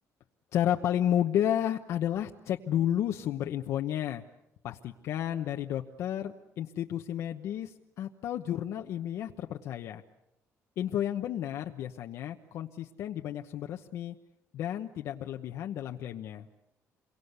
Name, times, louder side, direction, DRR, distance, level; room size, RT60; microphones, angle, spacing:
voice 1, 0.5-4.2 4.6-10.0 10.8-14.1 14.5-16.5, left 10 dB, 60° left, 4 dB, 1.0 m, -32 dB
28.0 x 23.5 x 8.1 m, 0.88 s
cardioid pair, 180°, 6 cm